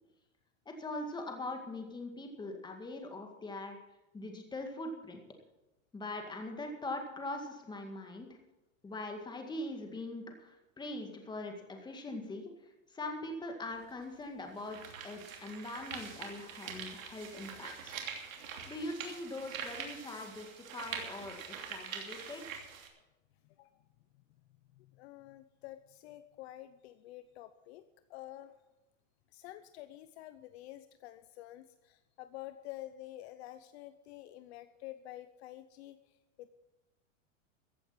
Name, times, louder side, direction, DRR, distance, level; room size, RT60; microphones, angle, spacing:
voice 1, 0.7-3.8 4.1-5.2 5.9-8.4 8.8-14.8 15.0-18.0 18.4-22.6, left 2 dB, 10° left, 3 dB, 2.0 m, -42 dB
sound 1, 13.7-13.8 14.4-22.9, right 7 dB, 85° right, 3.1 m, -44 dB
voice 2, 23.4-23.8 24.7-27.8 28.1-28.5 29.3-36.0 36.4-36.6, left 14 dB, 55° left, 11 dB, 0.8 m, -49 dB
15.0 x 8.4 x 7.4 m, 1.0 s
supercardioid pair, 140°, 39 cm